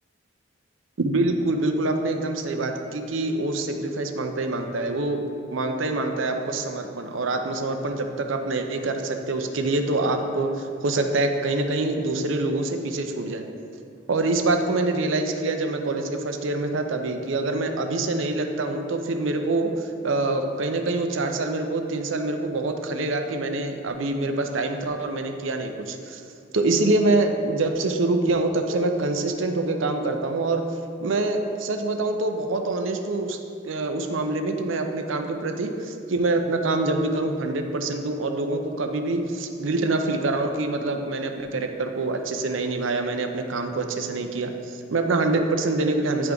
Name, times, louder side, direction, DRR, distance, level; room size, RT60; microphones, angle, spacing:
voice 1, 1.0-5.2 5.5-13.4 14.1-26.2 26.5-30.6 31.0-33.4 33.6-46.3, right 2 dB, 75° right, 5 dB, 0.6 m, -25 dB
9.6 x 3.5 x 5.2 m, 2.5 s
head